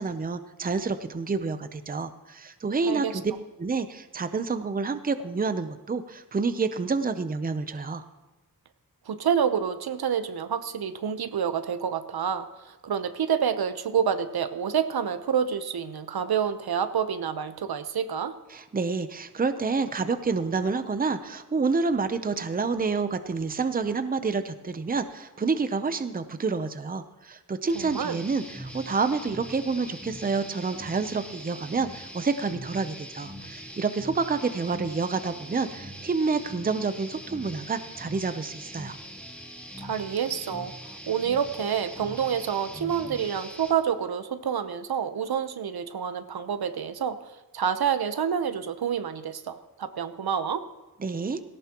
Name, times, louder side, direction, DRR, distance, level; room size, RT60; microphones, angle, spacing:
voice 1, 0.0-3.2 3.6-8.0 18.5-39.0 51.0-51.4, right 4 dB, 25° right, 10 dB, 0.7 m, -28 dB
voice 2, 9.1-18.3 27.7-28.2 39.8-50.6, right 8 dB, 85° right, 10 dB, 0.9 m, -28 dB
sound 1, 27.7-43.7, equal, 5° left, 1.8 m, -42 dB
17.5 x 17.5 x 3.0 m, 1.1 s
wide cardioid pair, 165°, 36 cm